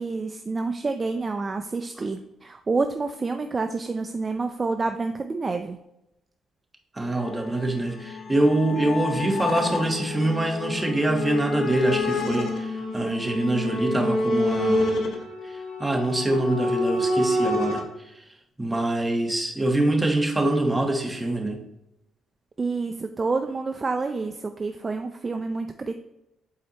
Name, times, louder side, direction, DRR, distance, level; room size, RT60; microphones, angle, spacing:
voice 1, 0.0-5.8 22.6-25.9, right 3 dB, 30° right, 7 dB, 0.4 m, -28 dB
voice 2, 6.9-15.0 15.4-18.2 18.6-21.6, right 1 dB, 10° right, 2 dB, 1.2 m, -25 dB
sound 1, 7.2-17.8, left 2 dB, 70° left, 1.1 m, -28 dB
8.4 x 4.3 x 2.9 m, 0.86 s
cardioid pair, 90°, 0 cm